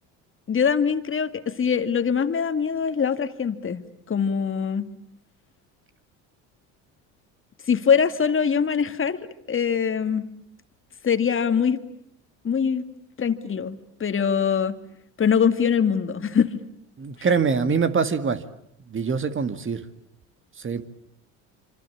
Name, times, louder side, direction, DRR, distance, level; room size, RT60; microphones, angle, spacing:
voice 1, 0.5-3.8 4.1-4.9 7.6-9.2 9.5-10.3 11.0-11.8 12.4-12.8 13.2-14.8 15.2-16.6, left 7 dB, 35° left, 10 dB, 2.3 m, -23 dB
voice 2, 17.0-18.4 18.9-19.8 20.6-20.8, right 5 dB, 35° right, 11 dB, 2.1 m, -24 dB
27.0 x 25.0 x 8.6 m, 0.71 s
hypercardioid pair, 75°, 37 cm